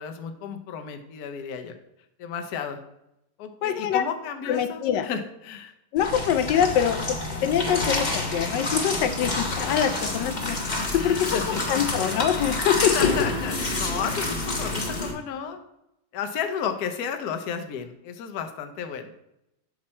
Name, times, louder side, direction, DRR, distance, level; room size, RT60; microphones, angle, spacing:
voice 1, 0.0-1.7 2.2-2.8 3.4-5.7 11.0-11.6 12.8-15.6 16.1-19.1, left 7 dB, 65° left, 6 dB, 1.2 m, -33 dB
voice 2, 3.6-4.0 4.5-5.1 5.9-10.6 10.9-13.0, left 9 dB, 90° left, 9 dB, 1.2 m, -24 dB
sound 1, 6.0-15.1, left 2 dB, 30° left, 1.0 m, -28 dB
7.5 x 4.2 x 4.3 m, 0.84 s
omnidirectional pair, 1.8 m